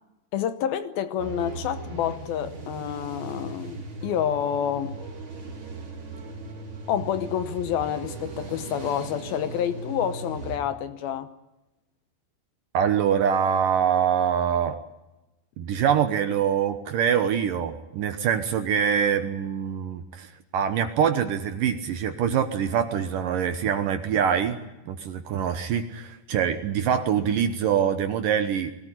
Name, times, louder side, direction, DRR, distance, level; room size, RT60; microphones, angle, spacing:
voice 1, 0.3-5.0 6.9-11.3, left 9 dB, 75° left, 2.5 m, -28 dB
sound 1, 1.2-10.6, right 3 dB, 35° right, 3.1 m, -38 dB
voice 2, 12.7-14.8 15.6-24.6 24.9-28.7, right 8 dB, 70° right, 2.3 m, -24 dB
22.0 x 17.5 x 9.8 m
omnidirectional pair, 4.8 m